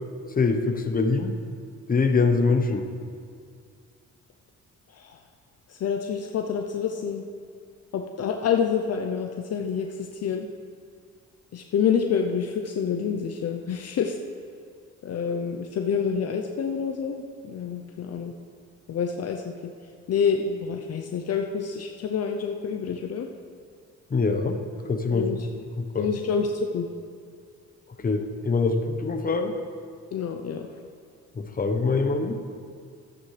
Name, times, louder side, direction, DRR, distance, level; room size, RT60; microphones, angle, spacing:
voice 1, 0.4-1.3 1.9-2.9 24.1-24.6 24.9-25.4 25.8-26.1 28.0-29.5 31.4-32.4, left 4 dB, 30° left, 5 dB, 1.0 m, -24 dB
voice 2, 5.7-7.2 7.9-10.5 11.5-14.2 15.0-18.3 18.9-19.5 20.1-23.3 25.1-25.5 26.0-26.9 30.1-30.7, left 6 dB, 55° left, 4 dB, 0.7 m, -27 dB
13.5 x 10.5 x 3.3 m, 2.2 s
cardioid pair, 90°, 30 cm